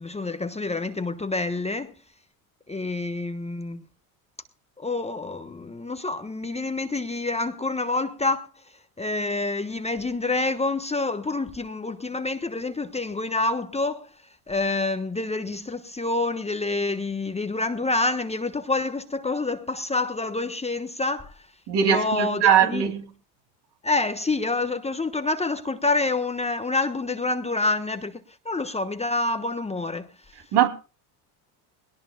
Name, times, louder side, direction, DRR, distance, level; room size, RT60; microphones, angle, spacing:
voice 1, 0.0-2.0 2.7-3.8 4.8-8.6 9.0-14.1 14.5-21.5 21.8-22.8 23.8-28.2 28.4-30.3, left 3 dB, 15° left, 1.2 m, -27 dB
voice 2, 21.7-23.1 30.5-30.7, right 9 dB, 55° right, 2.9 m, -20 dB
21.0 x 18.0 x 2.3 m
hypercardioid pair, 80°, 48 cm